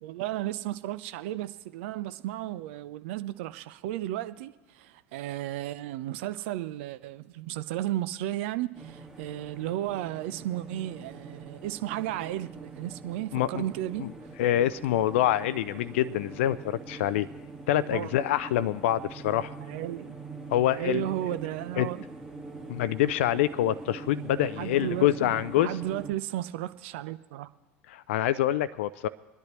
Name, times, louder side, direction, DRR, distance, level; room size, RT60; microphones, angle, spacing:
voice 1, 0.0-14.1 17.9-18.1 19.6-20.1 20.7-22.0 24.4-27.5, right 14 dB, 60° right, 0.7 m, -34 dB
sound 1, 8.7-26.1, right 3 dB, 10° right, 1.7 m, -44 dB
voice 2, 13.3-13.6 14.0-14.1 14.4-17.3 17.7-19.5 20.5-21.1 21.8-21.9 22.7-25.7 27.9-29.1, left 12 dB, 65° left, 0.4 m, -26 dB
24.5 x 10.5 x 3.1 m
figure-of-eight pair, 75°, 7 cm